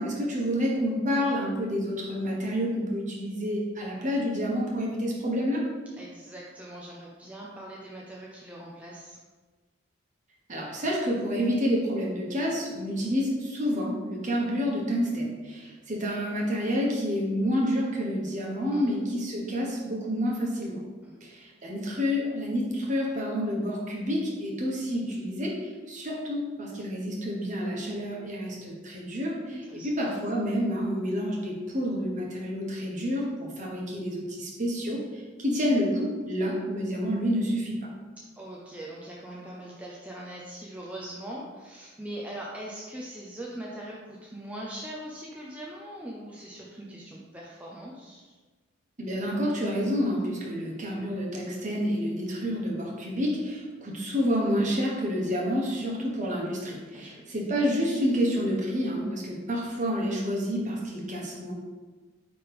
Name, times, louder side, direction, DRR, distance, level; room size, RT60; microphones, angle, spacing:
voice 1, 0.0-5.6 10.5-20.8 21.2-37.9 49.0-61.5, equal, 40° right, -2 dB, 1.3 m, -29 dB
voice 2, 6.0-9.2 18.7-18.9 21.0-21.2 29.5-29.9 38.4-48.4 56.9-57.4, right 1 dB, 5° right, -4 dB, 0.5 m, -41 dB
9.0 x 3.4 x 3.5 m, 1.3 s
head